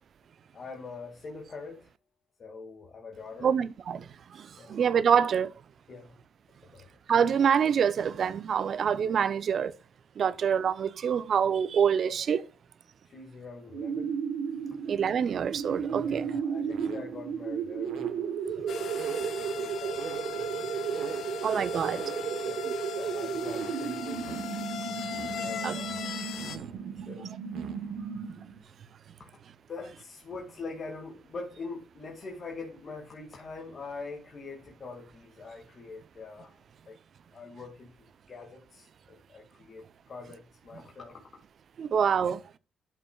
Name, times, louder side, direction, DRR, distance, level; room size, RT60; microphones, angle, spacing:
voice 1, 0.5-1.9 2.4-3.6 4.6-4.8 5.9-6.1 6.6-6.9 10.2-10.3 13.0-14.1 16.0-18.2 18.6-20.0 22.4-22.6 22.9-24.4 25.4-26.1 26.5-26.7 27.1-27.3 29.2-29.3 29.7-36.6 36.9-37.0 37.3-41.2, left 4 dB, 45° left, 2.0 m, -43 dB
voice 2, 3.4-5.5 7.1-9.7 10.2-12.4 14.9-16.3 21.4-22.0 25.0-25.1 25.6-25.8 41.8-42.4, right 7 dB, 55° right, 0.6 m, -26 dB
sound 1, 13.7-28.6, right 7 dB, 75° right, 1.1 m, -34 dB
sound 2, 18.7-26.6, left 9 dB, 65° left, 0.9 m, -39 dB
12.0 x 5.9 x 2.3 m
cardioid pair, 90°, 0 cm